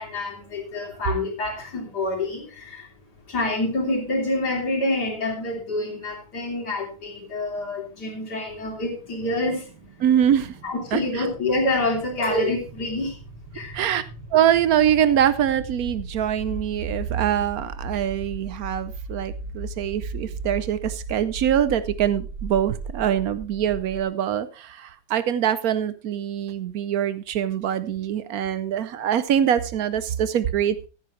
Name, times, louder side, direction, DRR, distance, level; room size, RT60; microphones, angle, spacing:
voice 1, 0.0-2.9 3.3-9.7 10.6-13.2 13.5-13.8, left 2 dB, 55° left, 1 dB, 3.5 m, -27 dB
sound 1, 8.2-24.0, right 3 dB, 80° right, 2.4 m, -37 dB
voice 2, 10.0-10.5 10.9-11.3 13.7-14.0 14.3-30.9, right 10 dB, 65° right, 14 dB, 0.9 m, -23 dB
15.0 x 9.4 x 3.2 m, 0.35 s
omnidirectional pair, 2.1 m